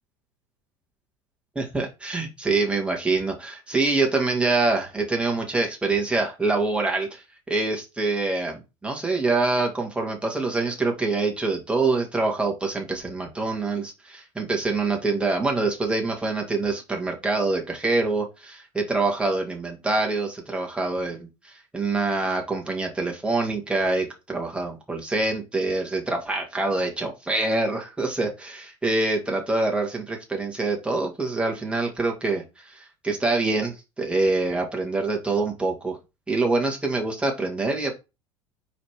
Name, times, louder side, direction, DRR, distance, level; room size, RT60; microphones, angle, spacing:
voice 1, 1.6-36.0 36.3-37.9, right 3 dB, 5° right, 0 dB, 2.1 m, -25 dB
5.0 x 4.1 x 4.6 m, 0.26 s
figure-of-eight pair, 70°, 15 cm